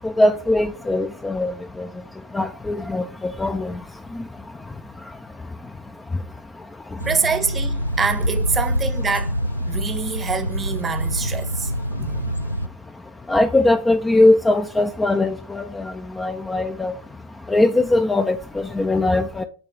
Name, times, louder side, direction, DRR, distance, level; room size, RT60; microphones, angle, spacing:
voice 1, 0.0-1.9 2.3-3.8 4.1-4.2 13.3-16.9 17.5-19.4, left 2 dB, 10° left, 0.4 m, -20 dB
sound 1, 7.0-12.7, equal, 90° left, 0.3 m, -25 dB
voice 2, 7.1-9.3 9.7-12.3, right 5 dB, 15° right, 0.8 m, -26 dB
8.6 x 3.2 x 5.1 m
figure-of-eight pair, 90°, 0 cm